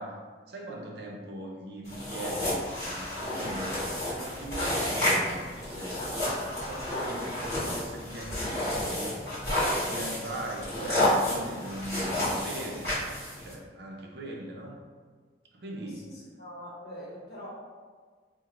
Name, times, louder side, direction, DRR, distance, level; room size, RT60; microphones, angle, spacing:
voice 1, 0.0-6.1 6.6-13.0 13.4-14.8 15.5-16.1, right 1 dB, 60° right, 0 dB, 0.5 m, -40 dB
sound 1, 1.9-13.5, left 1 dB, 15° left, 1.5 m, -30 dB
voice 2, 15.8-17.5, equal, 60° left, -5 dB, 1.0 m, -44 dB
2.9 x 2.1 x 3.6 m, 1.5 s
head